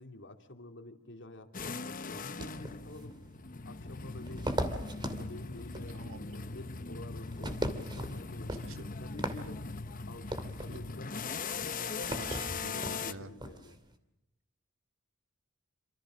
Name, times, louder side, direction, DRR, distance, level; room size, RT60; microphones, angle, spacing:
voice 1, 0.0-3.2 3.6-4.5 5.2-9.6 10.1-12.1 12.7-13.8, left 1 dB, 60° left, 5 dB, 2.7 m, -49 dB
sound 1, 1.5-13.1, left 4 dB, 40° left, 1.0 m, -40 dB
sound 2, 2.4-13.9, right 1 dB, 20° right, 2.6 m, -40 dB
voice 2, 5.9-6.2 8.6-8.8 12.1-13.3, right 2 dB, 70° right, 8 dB, 2.1 m, -46 dB
28.0 x 26.0 x 6.3 m, 0.84 s
head